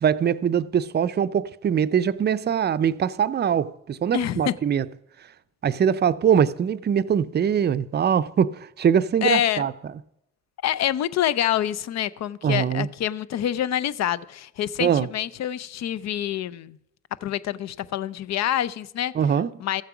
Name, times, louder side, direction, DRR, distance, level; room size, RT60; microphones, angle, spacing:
voice 1, 0.0-4.9 5.6-9.7 12.4-12.9 14.8-15.1 19.1-19.5, right 8 dB, 35° right, 0.5 m, -22 dB
voice 2, 4.1-4.5 9.2-9.6 10.6-16.8 17.2-19.1 19.6-19.8, left 11 dB, 60° left, 0.6 m, -26 dB
14.0 x 7.4 x 5.9 m
cardioid pair, 90°, 30 cm